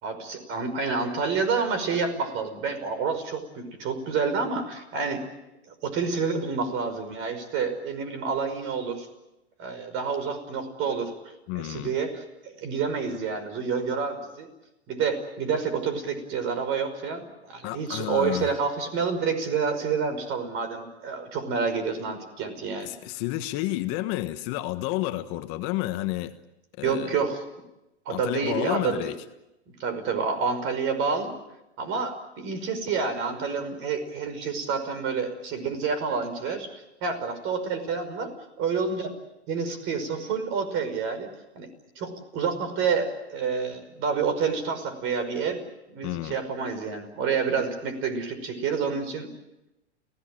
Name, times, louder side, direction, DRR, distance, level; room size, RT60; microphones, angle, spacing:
voice 1, 0.0-5.2 5.7-9.1 9.6-11.1 11.6-14.5 14.9-22.9 26.8-27.5 28.1-29.1 29.8-31.3 31.8-38.3 38.6-39.1 39.5-41.3 41.6-41.7 42.0-45.6 45.9-49.3, right 5 dB, 40° right, 5.5 m, -28 dB
voice 2, 11.5-11.9 17.6-18.5 22.8-26.3 26.8-27.2 28.1-29.2 46.0-46.4, left 16 dB, 45° left, 1.5 m, -30 dB
30.0 x 17.0 x 9.1 m
hypercardioid pair, 125°, 33 cm